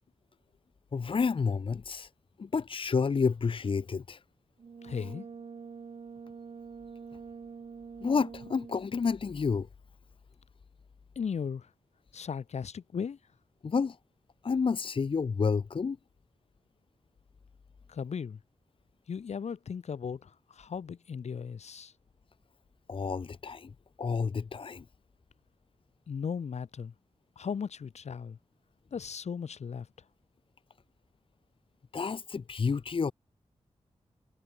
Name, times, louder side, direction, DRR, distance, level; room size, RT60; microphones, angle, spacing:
voice 1, 0.9-2.1 2.4-4.2 8.0-9.7 13.6-14.0 14.4-16.0 22.9-23.7 24.0-24.8 31.9-33.1, left 5 dB, 50° left, 1.4 m, -30 dB
Brass instrument, 4.6-9.0, right 5 dB, 60° right, 2.4 m, -45 dB
voice 2, 4.8-5.3 11.2-11.7 12.1-13.2 17.9-18.4 19.1-21.9 26.1-26.9 27.4-28.4 28.9-29.9, left 6 dB, 80° left, 4.5 m, -36 dB
wide cardioid pair, 130°, 11 cm